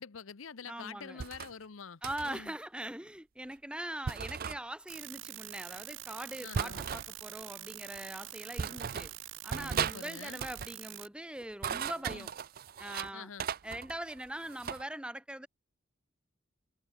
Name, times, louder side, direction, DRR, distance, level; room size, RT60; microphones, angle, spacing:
voice 1, 0.0-2.5 6.4-6.8 9.7-10.4 12.1-12.3 13.1-13.5, left 6 dB, 85° left, 0.8 m, -46 dB
voice 2, 0.6-1.2 2.0-9.1 9.4-12.3 12.8-13.3 13.6-15.5, right 1 dB, 5° right, 1.0 m, -42 dB
sound 1, 1.2-1.5 2.0-2.4 4.1-4.6 6.5-7.1 8.0-8.1 8.6-9.1 9.5-10.0 10.3-10.7 11.4-13.1 13.4-14.8, right 7 dB, 45° right, 0.4 m, -36 dB
sound 2, 4.9-11.1, right 14 dB, 75° right, 1.8 m, -45 dB
head